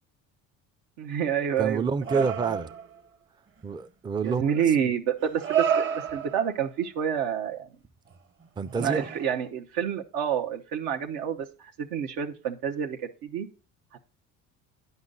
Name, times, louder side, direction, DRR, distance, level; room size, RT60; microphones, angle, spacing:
voice 1, 1.0-1.8 4.2-7.7 8.7-13.5 13.9-14.0, right 8 dB, 75° right, 1.0 m, -28 dB
voice 2, 1.6-2.7 3.6-4.4 4.8-4.9 8.6-9.1, right 5 dB, 15° right, 0.4 m, -28 dB
sound 1, 2.0-3.0 4.2-4.3 5.2-6.6 8.1-8.2 8.7-9.4, right 8 dB, 35° right, 0.9 m, -29 dB
9.6 x 5.6 x 3.9 m
supercardioid pair, 90°, 35 cm